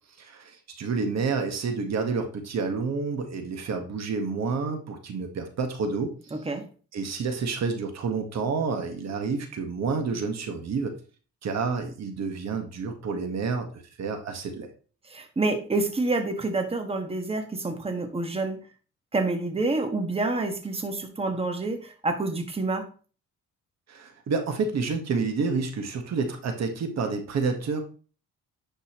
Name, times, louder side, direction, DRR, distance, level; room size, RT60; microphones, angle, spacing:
voice 1, 0.2-6.4 6.9-10.9 11.4-14.7 23.9-27.8, right 4 dB, 60° right, 5 dB, 1.5 m, -29 dB
voice 2, 6.3-6.6 15.1-18.6 19.1-22.9, right 2 dB, 20° right, 5 dB, 1.5 m, -28 dB
10.5 x 5.4 x 3.0 m, 0.38 s
cardioid pair, 90°, 30 cm